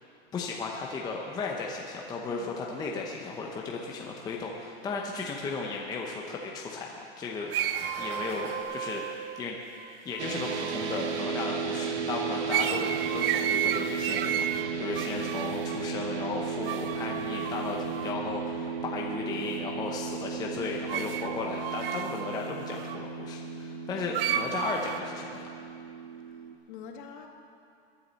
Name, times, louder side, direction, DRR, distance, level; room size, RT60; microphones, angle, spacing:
voice 1, 0.3-7.6 8.0-9.6 10.0-25.5, left 4 dB, 10° left, -1 dB, 0.8 m, -35 dB
sound 1, 2.9-3.0 3.5-3.6 4.6-4.7 5.9-6.0 6.5-6.6 7.2-8.6, right 2 dB, 30° right, 2.3 m, -44 dB
sound 2, 7.5-11.1 12.5-15.8 16.6-18.1 20.9-23.0 24.1-25.0, right 10 dB, 55° right, 0.7 m, -33 dB
sound 3, 10.2-26.5, right 6 dB, 90° right, 1.4 m, -34 dB
voice 2, 26.3-27.3, left 8 dB, 45° left, 3 dB, 1.5 m, -45 dB
21.0 x 10.0 x 4.1 m, 2.5 s
supercardioid pair, 155°, 33 cm